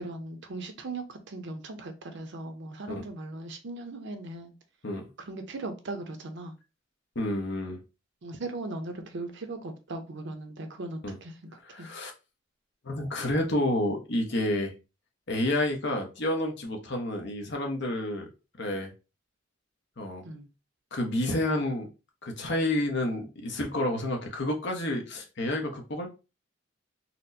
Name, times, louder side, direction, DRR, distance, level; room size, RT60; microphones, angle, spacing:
voice 1, 0.0-4.5 5.2-6.5 8.2-11.5 11.8-11.9 20.2-20.5, right 2 dB, 65° right, 0.7 m, -38 dB
voice 2, 7.1-7.8 11.0-11.2 11.6-12.1 12.8-14.7 15.3-18.3 18.6-18.9 20.0-20.2 20.9-21.9 22.2-26.1, left 1 dB, 60° left, 0.9 m, -29 dB
4.2 x 2.1 x 2.6 m
head